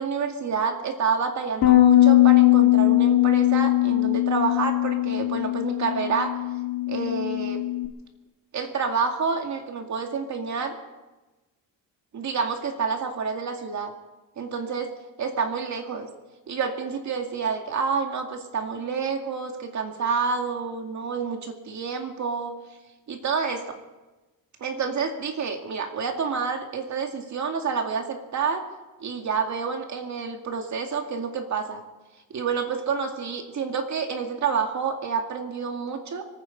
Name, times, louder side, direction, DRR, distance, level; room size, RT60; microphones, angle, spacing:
voice 1, 0.0-6.3 6.9-7.6 8.5-10.7 12.1-13.9 14.4-14.9 15.2-16.1 16.5-22.5 23.1-23.8 24.6-28.6 29.0-31.8 32.3-36.2, right 5 dB, 45° right, 4 dB, 2.2 m, -28 dB
Bass guitar, 1.6-7.9, left 16 dB, 70° left, 1.7 m, -20 dB
26.0 x 9.7 x 5.4 m, 1.1 s
cardioid pair, 130°, 38 cm